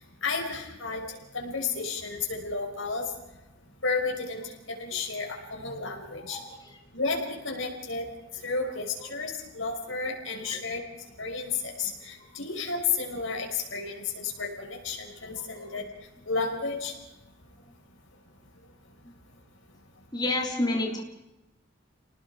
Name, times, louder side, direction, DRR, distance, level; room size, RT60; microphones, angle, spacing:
voice 1, 0.2-1.1 1.3-3.1 3.8-6.4 6.9-8.1 8.4-10.8 11.2-15.8 16.3-16.9, left 4 dB, 85° left, 1 dB, 5.6 m, -32 dB
voice 2, 6.3-6.8 9.0-9.1 10.5-10.6 12.3-12.4 15.4-15.8 19.0-19.1 20.1-21.0, left 2 dB, 20° left, 1 dB, 3.5 m, -31 dB
29.5 x 19.5 x 4.9 m, 0.96 s
head